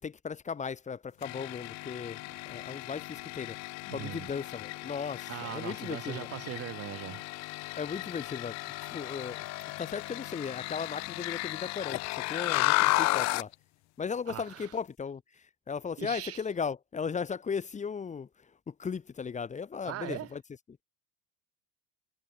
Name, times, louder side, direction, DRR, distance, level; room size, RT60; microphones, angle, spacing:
voice 1, 0.0-6.3 7.8-9.5 9.8-13.5 14.0-18.3 18.7-20.4, left 6 dB, 25° left, 3.0 m, -37 dB
sound 1, 1.2-13.5, left 22 dB, 60° left, 0.8 m, -34 dB
voice 2, 3.9-4.3 5.3-7.2 14.3-14.7 16.0-16.4 19.8-20.3, right 14 dB, 50° right, 4.6 m, -40 dB
cardioid pair, 140°, 30 cm